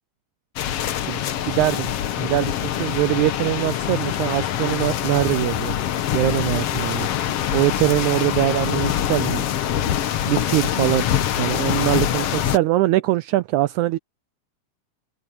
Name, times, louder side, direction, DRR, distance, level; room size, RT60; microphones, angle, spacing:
sound 1, 0.6-12.6, left 11 dB, 75° left, 1.4 m, -24 dB
voice 1, 1.1-1.9 2.2-5.7 6.1-7.1 7.5-9.4 10.3-11.1 11.4-14.0, right 16 dB, 85° right, 1.7 m, -22 dB
open air
omnidirectional pair, 4.1 m